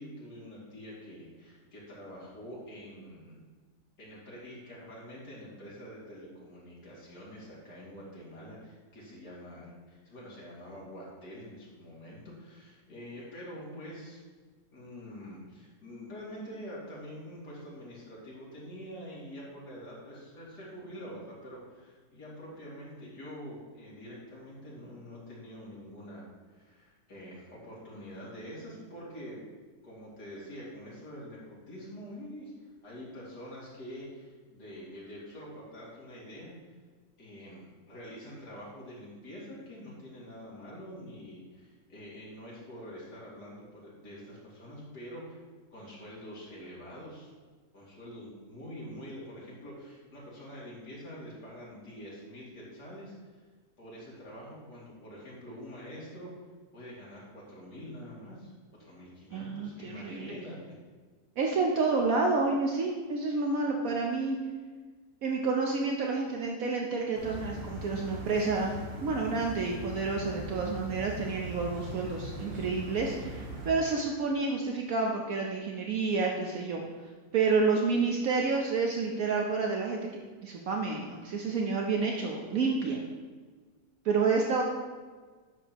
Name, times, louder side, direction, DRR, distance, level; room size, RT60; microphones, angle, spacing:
voice 1, 0.0-3.4 4.0-14.2 14.7-26.2 26.5-29.4 29.8-36.5 37.2-45.4 45.7-47.3 47.7-53.1 53.8-56.3 56.7-58.5 58.8-60.8, equal, 80° left, -7 dB, 3.0 m, -46 dB
voice 2, 59.3-60.3 61.4-64.4 65.2-68.7 69.0-76.8 77.3-80.0 80.4-83.0 84.0-84.7, right 4 dB, 65° right, 1 dB, 1.1 m, -29 dB
sound 1, 67.1-73.7, equal, 90° right, 2.9 m, -40 dB
9.8 x 6.8 x 3.0 m, 1.5 s
omnidirectional pair, 1.7 m